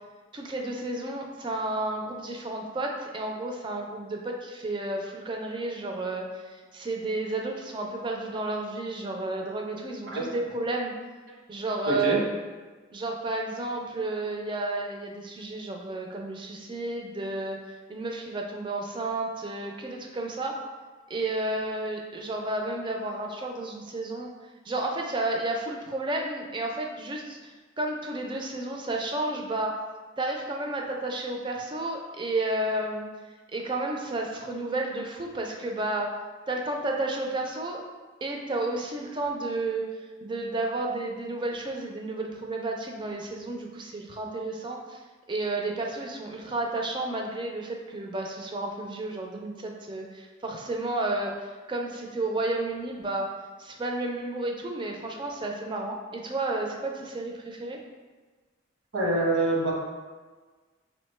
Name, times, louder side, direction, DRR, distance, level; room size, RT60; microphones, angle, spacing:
voice 1, 0.3-10.9 11.5-12.2 12.9-20.6 21.1-24.3 24.7-29.8 30.2-33.1 33.5-36.1 36.5-37.8 38.2-39.9 40.2-45.0 45.3-53.3 53.6-57.8, right 2 dB, 25° right, 1 dB, 0.4 m, -32 dB
voice 2, 11.9-12.2 58.9-59.7, right 2 dB, 80° right, -3 dB, 1.0 m, -25 dB
4.9 x 2.1 x 3.1 m, 1.4 s
head